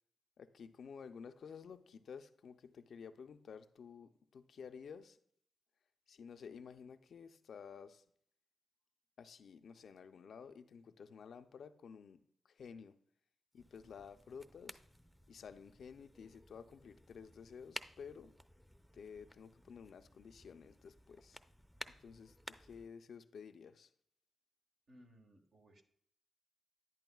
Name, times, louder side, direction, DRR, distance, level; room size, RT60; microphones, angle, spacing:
voice 1, 0.4-5.2 6.1-8.0 9.2-12.2 12.5-13.0 13.5-14.8 15.3-18.3 18.9-21.4 22.0-23.9, left 6 dB, 75° left, 0.5 m, -53 dB
sound 1, 13.5-22.9, equal, ahead, 0.6 m, -55 dB
voice 2, 24.9-25.8, equal, 70° right, 1.5 m, -62 dB
10.5 x 10.5 x 2.3 m
supercardioid pair, 45°, 0 cm